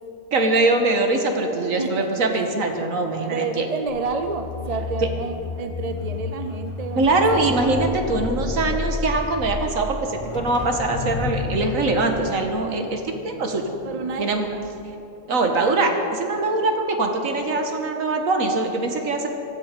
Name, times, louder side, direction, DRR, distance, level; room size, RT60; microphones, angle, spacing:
voice 1, 0.3-3.7 6.9-13.6 14.2-14.5 15.3-19.3, right 2 dB, 80° right, 4 dB, 1.8 m, -22 dB
voice 2, 1.8-2.1 3.2-7.5 13.8-14.6, right 4 dB, 45° right, 7 dB, 0.5 m, -30 dB
sound 1, 3.9-14.2 14.6-14.8, left 4 dB, 30° left, 0.7 m, -31 dB
17.5 x 13.5 x 5.3 m, 2.9 s
omnidirectional pair, 1.4 m